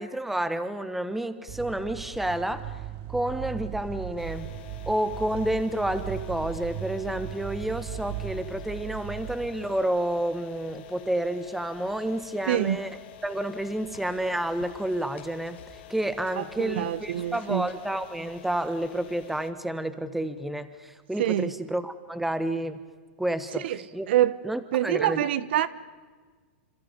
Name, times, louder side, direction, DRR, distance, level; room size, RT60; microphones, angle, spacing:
voice 1, 0.0-2.7 3.1-4.5 4.9-12.9 13.2-22.8 23.2-23.6 23.9-24.1 24.4-25.2, right 1 dB, 5° right, 1.3 m, -30 dB
sound 1, 1.5-9.8, right 12 dB, 35° right, 1.3 m, -38 dB
sound 2, 4.2-19.5, left 14 dB, 60° left, 2.1 m, -48 dB
sound 3, 11.2-17.9, left 6 dB, 90° left, 4.4 m, -55 dB
voice 2, 12.5-12.8 16.4-17.7 21.2-21.5 23.6-23.8 24.1-24.4 24.7-25.7, right 12 dB, 65° right, 1.1 m, -25 dB
27.5 x 27.5 x 5.3 m
hypercardioid pair, 140°, 6 cm